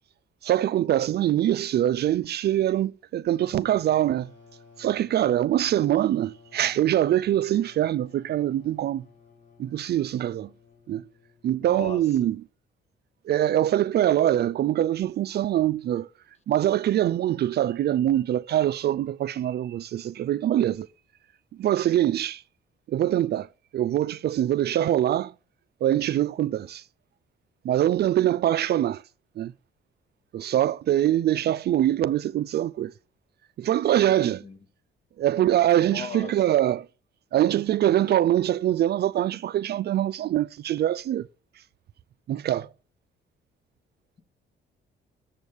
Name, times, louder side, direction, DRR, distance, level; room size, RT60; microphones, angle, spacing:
voice 1, 0.4-4.3 4.8-9.0 9.6-10.5 10.9-11.0 11.4-12.4 13.3-16.1 16.5-20.9 21.6-22.4 22.9-23.5 23.7-25.3 25.8-26.8 27.6-29.0 29.4-29.5 30.3-32.9 33.6-34.4 35.2-36.9 37.3-41.3 42.3-42.7, right 12 dB, 55° right, 0.4 m, -23 dB
sound 1, 3.4-11.8, left 5 dB, 70° left, 2.3 m, -54 dB
voice 2, 11.6-12.0 34.2-34.6 35.9-36.4, left 4 dB, 35° left, 1.2 m, -37 dB
7.3 x 6.3 x 7.0 m
cardioid pair, 90°, 20 cm